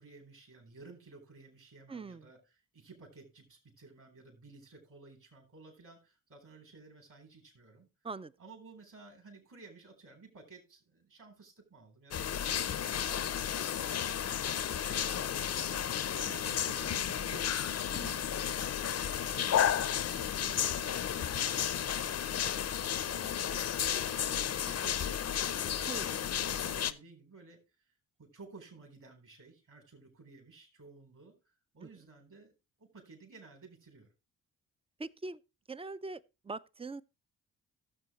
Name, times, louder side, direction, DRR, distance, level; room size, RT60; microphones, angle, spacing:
voice 1, 0.0-7.9 8.4-14.1 14.5-15.8 16.1-26.2 26.5-27.6 28.2-31.4 31.7-32.5 32.8-34.1, right 3 dB, 55° right, 3.9 m, -55 dB
voice 2, 1.9-2.2 8.0-8.3 17.9-18.2 25.9-26.0 35.0-35.4 35.7-37.0, right 3 dB, 15° right, 0.4 m, -42 dB
sound 1, 12.1-26.9, left 9 dB, 45° left, 0.6 m, -33 dB
15.0 x 6.8 x 3.0 m
hypercardioid pair, 40°, 38 cm